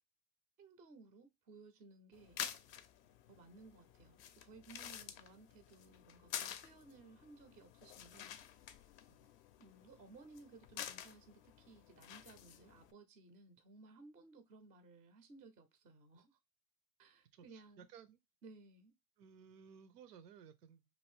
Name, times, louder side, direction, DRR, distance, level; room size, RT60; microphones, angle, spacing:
voice 1, 0.6-2.4 3.3-8.3 9.6-16.4 17.0-17.9 18.4-18.9, right 3 dB, 20° right, 0.4 m, -59 dB
sound 1, 2.1-12.9, left 9 dB, 45° left, 0.4 m, -50 dB
voice 2, 17.3-18.2 19.2-20.9, right 7 dB, 80° right, 0.6 m, -58 dB
2.7 x 2.6 x 3.1 m
hypercardioid pair, 100°, 47 cm